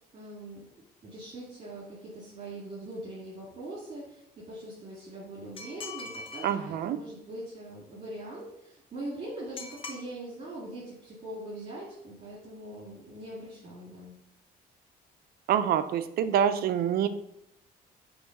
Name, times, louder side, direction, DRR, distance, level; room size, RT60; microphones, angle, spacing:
voice 1, 0.1-0.6 1.0-14.1, right 1 dB, 35° right, -6 dB, 2.2 m, -42 dB
sound 1, 5.6-6.5 9.6-10.0, left 3 dB, 30° left, 1.0 m, -41 dB
voice 2, 6.4-7.0 15.5-17.1, right 9 dB, 65° right, 11 dB, 0.6 m, -26 dB
6.1 x 3.1 x 5.2 m, 0.77 s
cardioid pair, 110°, 17 cm